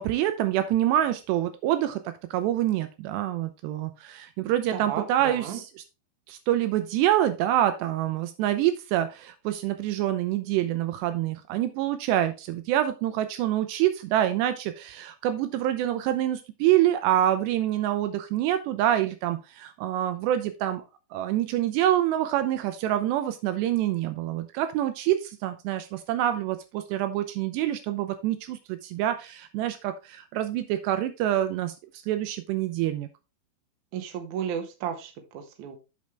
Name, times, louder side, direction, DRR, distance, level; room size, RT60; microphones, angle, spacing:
voice 1, 0.0-5.7 6.3-20.8 21.1-31.7 32.1-33.1, right 12 dB, 80° right, 10 dB, 2.7 m, -26 dB
voice 2, 4.7-5.6 33.9-35.8, right 8 dB, 65° right, 5 dB, 2.0 m, -34 dB
8.5 x 6.4 x 3.3 m, 0.28 s
omnidirectional pair, 5.1 m